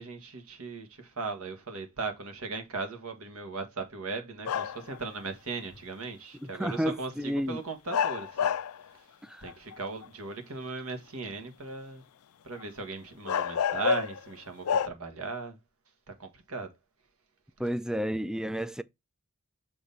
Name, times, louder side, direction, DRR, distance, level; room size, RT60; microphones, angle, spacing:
voice 1, 0.0-8.6 8.9-9.0 9.4-12.0 12.4-15.6 16.1-16.7, right 3 dB, 75° right, 1.6 m, -38 dB
sound 1, 4.5-5.0 6.7-6.8 7.9-8.8 9.5-10.0 12.6-12.7 13.3-14.3 14.6-14.9, left 7 dB, 85° left, 0.4 m, -28 dB
voice 2, 6.4-7.6 9.2-9.5 17.6-18.8, equal, 5° right, 0.3 m, -31 dB
6.2 x 3.0 x 5.3 m
head